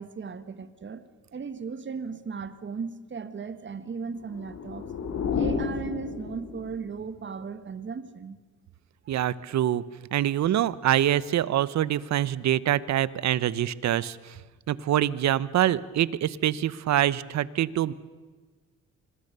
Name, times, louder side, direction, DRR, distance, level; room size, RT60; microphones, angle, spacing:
voice 1, 0.0-4.9 5.3-8.4, right 5 dB, 40° right, 1.7 m, -37 dB
sound 1, 4.2-6.9, left 6 dB, 60° left, 3.3 m, -31 dB
voice 2, 9.1-9.8 10.1-14.4 14.7-17.9, right 12 dB, 65° right, 0.9 m, -25 dB
26.0 x 22.5 x 6.8 m
cardioid pair, 90°, 30 cm